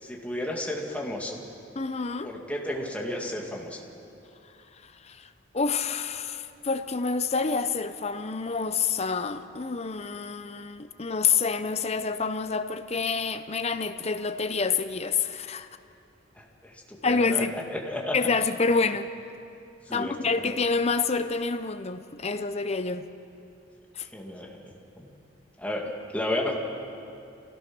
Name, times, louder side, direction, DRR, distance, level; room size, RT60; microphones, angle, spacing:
voice 1, 0.0-1.4 2.2-3.8 16.4-17.4 17.7-18.2 19.9-20.1 20.4-20.5 24.1-25.1 25.6-26.6, left 1 dB, 5° left, -1 dB, 2.2 m, -33 dB
voice 2, 1.8-2.3 4.8-15.7 17.0-17.5 18.1-19.1 19.9-23.0 23.9-24.1, left 4 dB, 35° left, 10 dB, 0.7 m, -28 dB
27.0 x 16.5 x 6.2 m, 2.6 s
head